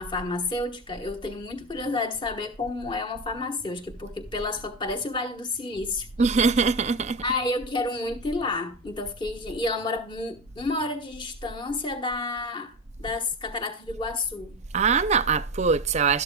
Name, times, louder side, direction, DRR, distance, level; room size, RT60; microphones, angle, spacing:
voice 1, 0.0-6.1 7.2-14.6, left 3 dB, 25° left, 1.3 m, -30 dB
Bass guitar, 1.5-11.1, equal, 80° left, 3.4 m, -57 dB
voice 2, 6.2-7.2 14.7-16.2, right 5 dB, 35° right, 0.5 m, -22 dB
12.0 x 12.0 x 2.3 m
head